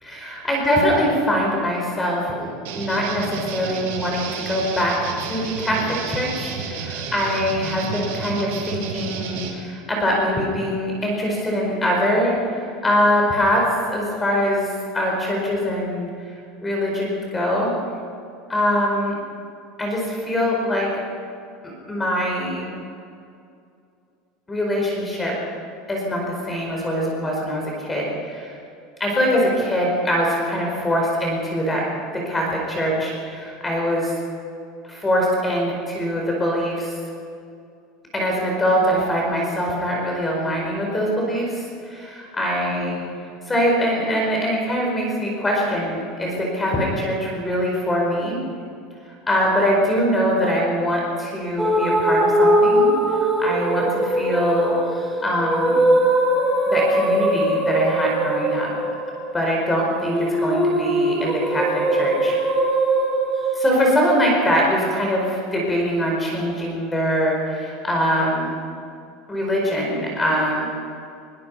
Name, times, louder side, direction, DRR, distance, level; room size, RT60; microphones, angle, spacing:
voice 1, 0.0-2.5 2.7-13.6 13.9-16.1 16.6-17.7 18.5-19.1 19.8-20.9 21.9-22.7 24.5-25.3 25.9-28.6 29.0-31.8 32.2-34.1 34.8-36.9 38.1-43.0 43.5-48.4 49.3-54.8 55.2-55.9 56.7-58.7 59.3-62.4 63.6-68.6 69.3-70.7, equal, 10° left, -1 dB, 4.8 m, -23 dB
sound 1, 2.7-9.5, right 6 dB, 90° right, 5.4 m, -31 dB
sound 2, 51.6-63.7, right 1 dB, 5° right, 2.8 m, -21 dB
22.0 x 22.0 x 5.6 m, 2.4 s
cardioid pair, 170°, 0 cm